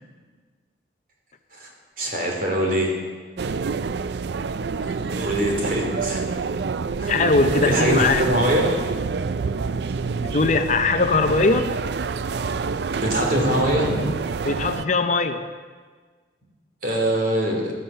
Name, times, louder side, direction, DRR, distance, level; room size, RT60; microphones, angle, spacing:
voice 1, 2.0-2.9 4.8-6.2 7.0-7.1 7.6-8.6 13.0-14.1 16.8-17.7, right 1 dB, 50° right, 0 dB, 3.0 m, -23 dB
sound 1, 3.4-14.8, right 5 dB, 65° right, 0.4 m, -27 dB
voice 2, 7.1-8.2 10.2-11.7 14.4-15.5, left 3 dB, 40° left, 8 dB, 0.6 m, -20 dB
15.0 x 12.0 x 5.5 m, 1.5 s
head